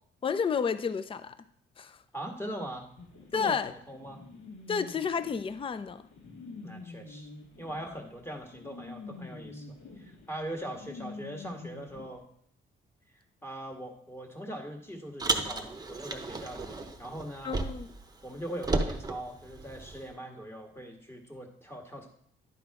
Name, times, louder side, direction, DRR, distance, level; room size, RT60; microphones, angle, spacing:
voice 1, 0.2-1.3 1.8-2.0 3.3-3.7 4.7-6.0 17.4-17.9, left 6 dB, 25° left, 0.5 m, -31 dB
voice 2, 2.1-2.9 3.3-4.2 6.6-7.3 7.6-12.3 13.4-17.6 18.2-22.1, right 1 dB, 10° left, 1.6 m, -41 dB
sound 1, 3.0-12.1, left 3 dB, 70° left, 1.7 m, -47 dB
Car, 15.2-18.0 18.3-20.1, right 3 dB, 20° right, 0.9 m, -33 dB
10.5 x 3.9 x 4.8 m
cardioid pair, 90°, 20 cm